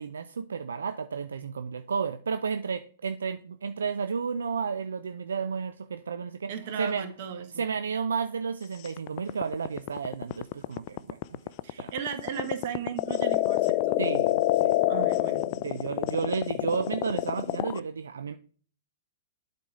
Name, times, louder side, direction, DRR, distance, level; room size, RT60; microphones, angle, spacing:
voice 1, 0.0-7.0 7.6-11.4 11.8-11.9 14.0-14.8 15.6-18.3, right 5 dB, 80° right, 0.5 m, -32 dB
voice 2, 6.5-7.6 11.6-14.0 14.9-15.9, right 7 dB, 55° right, 1.5 m, -36 dB
sound 1, 8.8-17.8, left 17 dB, 40° left, 0.4 m, -26 dB
8.4 x 4.2 x 4.9 m
hypercardioid pair, 120°, 0 cm